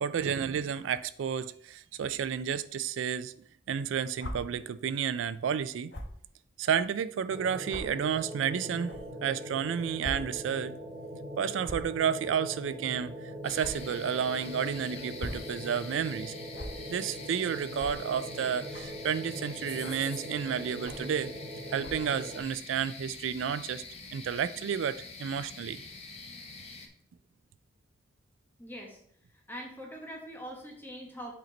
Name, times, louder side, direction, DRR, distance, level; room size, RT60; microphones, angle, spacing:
voice 1, 0.0-3.3 3.7-5.9 6.6-8.9 9.2-10.7 11.4-16.3 16.9-21.3 21.7-23.8 24.1-25.8, right 7 dB, 85° right, 0.3 m, -31 dB
sound 1, 4.2-4.3 5.9-6.1 6.9-7.0 7.7-7.8 8.9-9.0 10.0-10.1 10.5-10.6 11.6-11.9 13.6-13.7 15.0-15.4 16.5-16.7 17.7-17.9 18.7-19.0 19.8-20.1 20.8-21.1 21.8-22.1, left 1 dB, 60° left, 1.1 m, -40 dB
sound 2, 7.3-22.4, equal, 40° right, 1.4 m, -42 dB
sound 3, 13.4-26.9, left 4 dB, 30° left, 0.9 m, -46 dB
voice 2, 28.6-29.0 29.3-31.3, equal, 10° left, 1.2 m, -43 dB
7.7 x 4.5 x 3.9 m
head